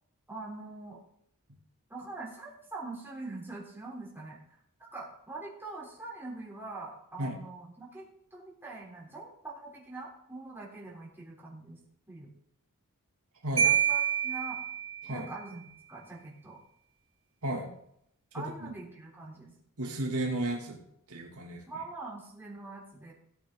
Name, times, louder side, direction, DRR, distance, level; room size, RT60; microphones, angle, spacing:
voice 1, 0.3-1.0 1.9-11.8 12.1-12.3 13.6-14.6 15.1-16.6 18.3-19.5 21.7-23.1, right 3 dB, 10° right, -4 dB, 3.5 m, -43 dB
Marimba xylophone, 13.6-15.3, right 8 dB, 25° right, 3.5 m, -28 dB
voice 2, 18.4-18.7 19.8-20.8 21.1-21.6, right 1 dB, 70° right, 0 dB, 2.5 m, -33 dB
17.0 x 8.8 x 3.9 m, 0.72 s
head